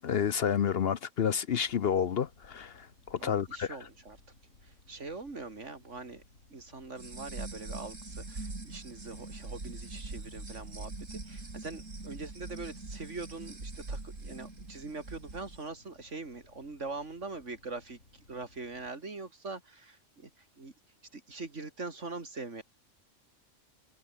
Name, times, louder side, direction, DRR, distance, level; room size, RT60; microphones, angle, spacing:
voice 1, 0.0-2.7 3.1-3.7, left 8 dB, 55° left, 0.9 m, -29 dB
Boat Water vehicle, 1.5-18.9, left 2 dB, 80° left, 5.1 m, -62 dB
voice 2, 3.2-4.2 4.6-6.2 6.5-18.0 18.3-20.7 21.1-22.6, right 3 dB, 70° right, 3.3 m, -43 dB
sound 1, 7.0-15.6, right 3 dB, 85° right, 4.4 m, -43 dB
omnidirectional pair, 1.3 m